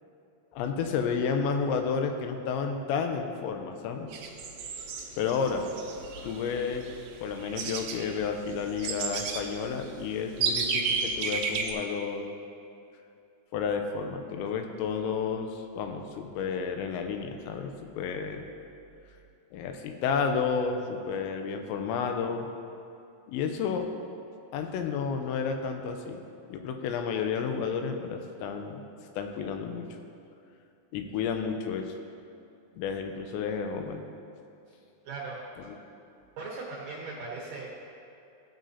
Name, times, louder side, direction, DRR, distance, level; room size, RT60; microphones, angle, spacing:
voice 1, 0.5-4.1 5.2-5.7 6.2-6.8 7.2-12.3 13.5-18.5 19.5-22.5 23.3-23.9 24.5-26.2 26.5-28.8 29.2-29.9 30.9-32.0 32.8-34.0 35.7-35.8, left 6 dB, 90° left, 5 dB, 2.9 m, -31 dB
sound 1, 4.1-11.7, right 5 dB, 90° right, 2.0 m, -33 dB
voice 2, 35.0-35.4 36.4-37.8, right 3 dB, 70° right, -4 dB, 2.2 m, -38 dB
15.5 x 7.5 x 2.8 m, 2.7 s
omnidirectional pair, 5.2 m